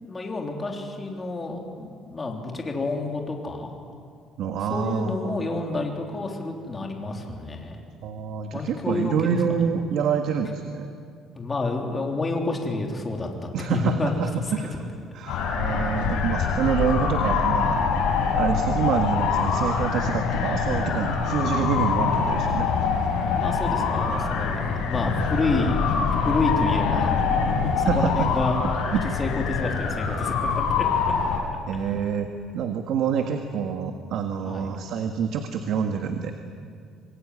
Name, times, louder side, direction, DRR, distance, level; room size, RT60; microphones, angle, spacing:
voice 1, 0.0-3.7 4.6-7.8 8.5-9.3 11.3-13.3 13.7-14.1 15.3-15.5 23.3-25.7 26.2-27.4 27.6-28.6 29.2-30.9 34.5-34.7, left 3 dB, 20° left, 1 dB, 3.5 m, -29 dB
voice 2, 4.4-5.8 8.0-10.9 13.5-14.8 15.1-17.8 18.3-22.7 27.9-28.3 28.9-29.0 31.7-36.3, right 7 dB, 65° right, 5 dB, 1.7 m, -27 dB
sound 1, 15.3-31.4, left 5 dB, 90° left, 6.0 m, -24 dB
26.5 x 22.0 x 9.7 m, 2.3 s
cardioid pair, 150°, 0 cm